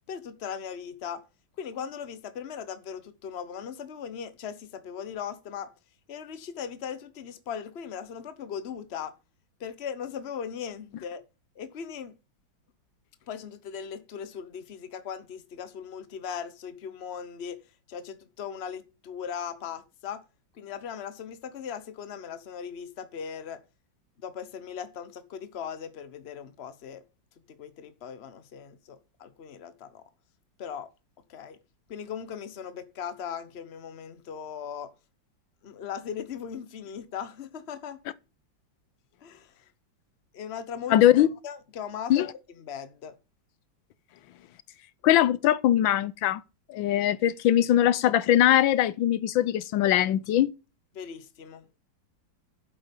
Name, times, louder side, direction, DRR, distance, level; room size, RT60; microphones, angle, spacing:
voice 1, 0.1-1.2 1.6-5.7 6.1-9.1 9.6-11.2 11.6-12.1 13.3-17.6 17.9-20.2 20.5-23.6 24.2-27.0 27.5-30.0 30.6-30.9 31.3-31.6 31.9-34.9 35.6-38.0 39.2-39.5 40.3-41.0 41.4-42.3 42.6-43.1 50.9-51.6, left 7 dB, 40° left, 1.1 m, -38 dB
voice 2, 40.9-41.3 42.1-42.3 45.0-46.4 46.7-50.5, left 12 dB, 85° left, 1.5 m, -21 dB
8.7 x 7.7 x 5.3 m
omnidirectional pair, 2.1 m